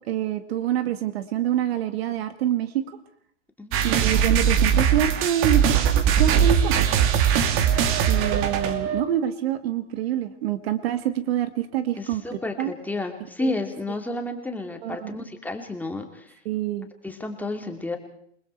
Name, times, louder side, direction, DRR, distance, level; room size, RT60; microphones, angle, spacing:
voice 1, 0.1-2.8 3.8-5.8 6.2-6.8 8.1-12.2 12.6-12.7 13.4-13.5 14.8-15.2 16.5-16.9, right 11 dB, 55° right, 10 dB, 2.0 m, -26 dB
sound 1, 3.7-9.0, right 8 dB, 35° right, 2.4 m, -20 dB
voice 2, 12.0-16.3 17.0-18.0, left 2 dB, 5° left, 3 dB, 2.6 m, -31 dB
28.5 x 20.5 x 4.6 m, 0.67 s
hypercardioid pair, 120°, 35 cm